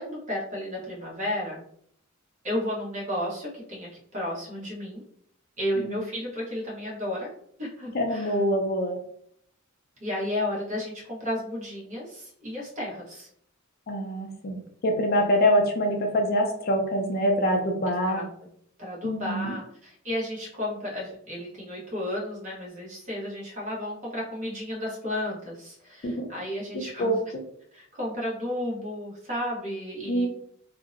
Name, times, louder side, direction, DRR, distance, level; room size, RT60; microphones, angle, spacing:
voice 1, 0.0-1.6 2.4-5.0 5.6-7.3 7.6-8.4 10.0-13.3 15.1-15.3 17.9-18.5 18.8-27.1 27.7-30.3, left 1 dB, 35° right, -4 dB, 0.9 m, -33 dB
voice 2, 7.9-9.0 13.9-14.6 14.8-18.2 19.0-19.5 26.0-26.3 27.0-27.2 30.1-30.3, equal, 45° left, 3 dB, 0.4 m, -25 dB
2.6 x 2.0 x 2.4 m, 0.66 s
head